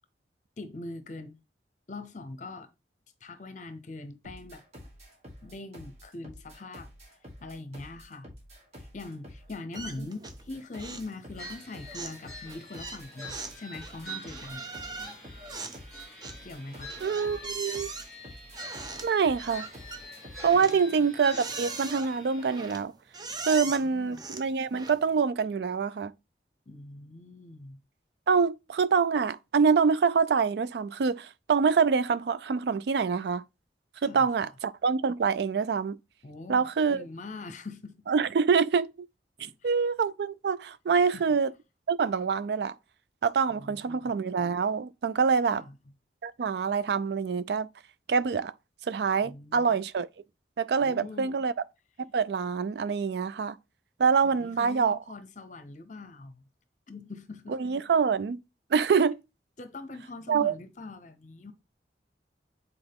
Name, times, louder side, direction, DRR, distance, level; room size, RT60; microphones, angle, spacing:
voice 1, 0.6-1.4 1.9-2.7 3.2-4.6 5.4-6.9 7.4-8.3 8.8-14.6 16.4-16.9 20.5-21.1 23.8-24.2 26.7-27.8 34.0-34.5 36.2-38.0 39.4-39.7 40.9-41.2 43.5-44.1 45.5-45.8 49.2-49.8 50.8-51.5 54.2-56.3 56.9-57.6 59.6-61.5, left 2 dB, 45° left, 0.7 m, -42 dB
sound 1, 4.2-20.5, equal, 40° right, 1.6 m, -49 dB
sound 2, 9.7-10.5 10.7-11.1 11.4-25.2, right 3 dB, 25° right, 0.6 m, -41 dB
sound 3, 11.4-22.8, equal, ahead, 3.4 m, -46 dB
voice 2, 17.0-17.9 19.0-19.7 20.4-22.9 23.5-26.1 28.3-33.4 34.0-36.0 36.5-37.0 38.1-39.1 39.6-41.5 41.9-42.7 43.2-45.6 46.2-47.7 48.1-48.5 48.9-50.1 50.6-51.5 52.1-53.6 54.0-55.0 57.5-58.4 58.7-59.2 60.3-60.5, right 5 dB, 65° right, 0.4 m, -25 dB
7.9 x 4.1 x 3.5 m
head